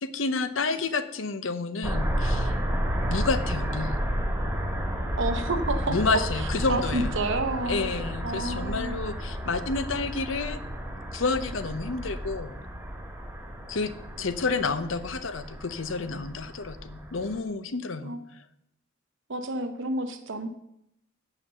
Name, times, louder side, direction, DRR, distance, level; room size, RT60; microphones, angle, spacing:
voice 1, 0.0-2.5 3.1-3.9 5.9-7.2 7.7-10.6 11.1-12.6 13.7-13.9 14.2-18.4, left 3 dB, 70° left, 12 dB, 0.7 m, -30 dB
sound 1, 1.8-17.4, equal, 10° right, 1.5 m, -31 dB
voice 2, 5.2-5.9 6.7-8.0 8.2-9.0 18.0-18.2 19.3-20.5, right 2 dB, 65° right, 6 dB, 0.8 m, -30 dB
8.2 x 5.8 x 6.7 m, 0.77 s
head